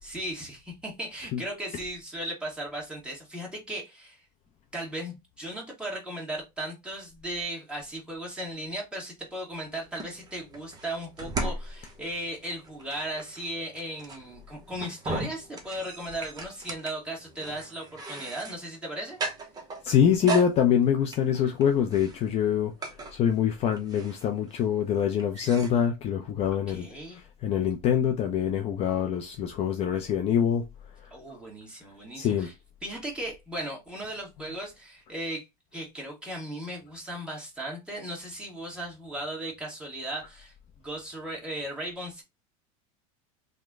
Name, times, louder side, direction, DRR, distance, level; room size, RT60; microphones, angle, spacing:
voice 1, 0.0-4.2 4.7-19.2 26.7-27.2 31.1-32.5 32.8-35.5 35.7-40.5 40.8-42.2, right 1 dB, 5° right, 1.4 m, -37 dB
sound 1, 9.5-25.7, right 3 dB, 20° right, 0.7 m, -38 dB
voice 2, 19.8-26.9 27.1-30.7 32.2-32.5, left 8 dB, 35° left, 0.4 m, -25 dB
3.0 x 2.1 x 3.5 m
supercardioid pair, 130°, 18 cm